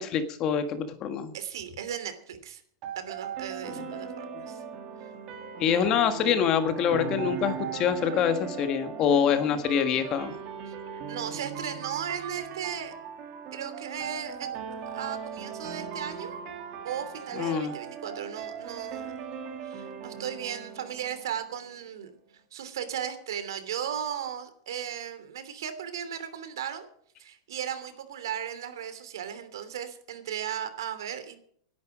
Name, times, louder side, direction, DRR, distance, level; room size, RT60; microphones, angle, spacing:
voice 1, 0.0-1.3 5.6-10.3 17.4-17.7, left 8 dB, 25° left, 9 dB, 1.5 m, -25 dB
voice 2, 1.3-2.6 3.0-4.6 5.6-6.0 10.7-12.9 13.5-14.6 14.9-16.4 16.8-19.3 19.6-22.1 22.5-26.9 27.2-31.4, right 9 dB, 90° right, 10 dB, 3.0 m, -36 dB
sound 1, 2.8-21.8, right 7 dB, 30° right, 2.5 m, -39 dB
18.0 x 11.0 x 5.0 m, 0.63 s
supercardioid pair, 170°, 2 cm